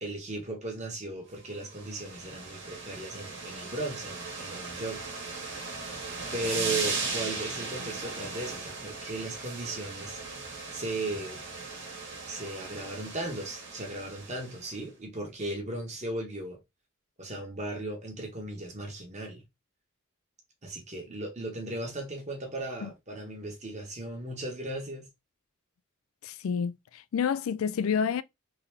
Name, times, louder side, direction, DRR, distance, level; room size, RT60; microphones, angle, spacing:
voice 1, 0.0-5.1 6.3-10.2 10.7-11.4 12.3-16.6 17.2-19.4 20.6-25.1, right 2 dB, 30° right, 1.3 m, -37 dB
sound 1, 1.5-14.7, right 4 dB, 55° right, 1.6 m, -37 dB
voice 2, 26.2-28.2, left 7 dB, 65° left, 0.3 m, -29 dB
3.8 x 2.8 x 3.4 m
head